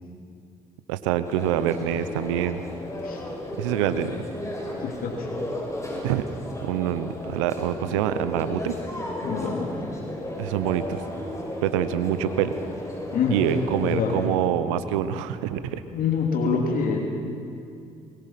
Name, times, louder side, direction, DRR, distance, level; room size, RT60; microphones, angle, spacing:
voice 1, 0.9-2.6 3.6-4.1 6.0-6.2 6.6-8.7 10.4-11.0 11.6-12.5 13.3-15.8, right 10 dB, 90° right, 12 dB, 0.9 m, -25 dB
sound 1, 1.2-14.3, left 1 dB, 20° left, 7.1 m, -34 dB
voice 2, 4.8-5.3 9.2-9.7 13.1-13.4 13.8-14.2 15.9-17.0, left 5 dB, 65° left, 1 dB, 3.0 m, -25 dB
22.5 x 21.5 x 5.9 m, 2.4 s
hypercardioid pair, 50°, 16 cm